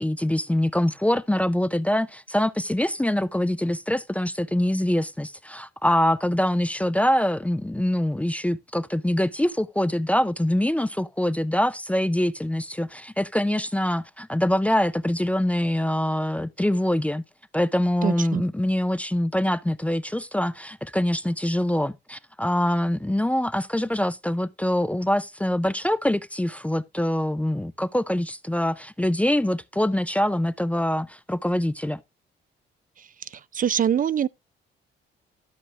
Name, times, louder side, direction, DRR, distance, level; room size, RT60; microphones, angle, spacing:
voice 1, 0.0-17.2 17.5-32.0, left 1 dB, 5° left, 0.5 m, -24 dB
voice 2, 18.0-18.4 33.3-34.3, right 9 dB, 45° right, 0.5 m, -24 dB
13.0 x 6.2 x 3.3 m
cardioid pair, 90°, 20 cm